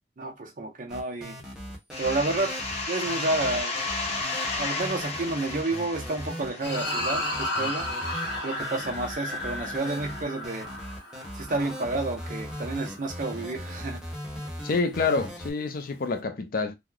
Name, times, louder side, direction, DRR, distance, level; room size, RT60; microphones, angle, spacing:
voice 1, 0.2-1.3 2.0-2.6 2.9-3.8 4.6-7.9 8.4-10.7 11.3-14.0, right 2 dB, 50° right, 0.6 m, -30 dB
sound 1, 0.9-15.5, equal, 5° right, 1.1 m, -39 dB
sound 2, 1.9-7.4, left 3 dB, 40° left, 0.9 m, -33 dB
sound 3, 6.6-13.2, left 1 dB, 85° left, 1.0 m, -34 dB
voice 2, 14.6-16.7, left 4 dB, 55° left, 0.5 m, -27 dB
3.0 x 2.0 x 3.8 m
head